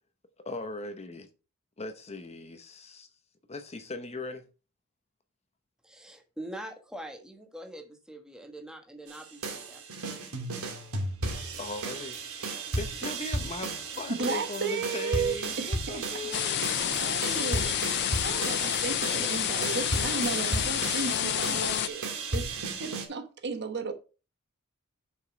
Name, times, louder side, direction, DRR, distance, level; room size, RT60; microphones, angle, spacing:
voice 1, 0.4-1.3 1.8-3.1 3.5-4.5 11.6-16.6, left 2 dB, 30° left, 0.8 m, -39 dB
voice 2, 5.8-9.8 10.1-10.4, right 1 dB, 5° right, 1.3 m, -44 dB
sound 1, 9.1-23.1, right 3 dB, 80° right, 2.2 m, -34 dB
voice 3, 14.1-16.3 16.8-17.7 18.2-22.1 22.3-23.9, right 4 dB, 50° right, 1.1 m, -34 dB
sound 2, 16.3-21.9, left 12 dB, 50° left, 0.4 m, -29 dB
6.7 x 5.4 x 5.1 m
head